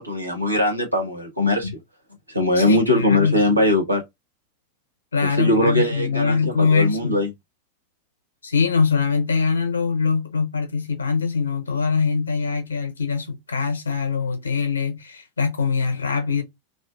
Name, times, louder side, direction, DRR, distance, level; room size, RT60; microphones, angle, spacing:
voice 1, 0.0-1.7 2.3-4.0 5.2-7.3, left 1 dB, 85° right, 0.9 m, -21 dB
voice 2, 2.5-3.4 5.1-7.2 8.4-16.4, left 5 dB, 75° left, 0.7 m, -23 dB
2.4 x 2.4 x 2.3 m
figure-of-eight pair, 90°, 0 cm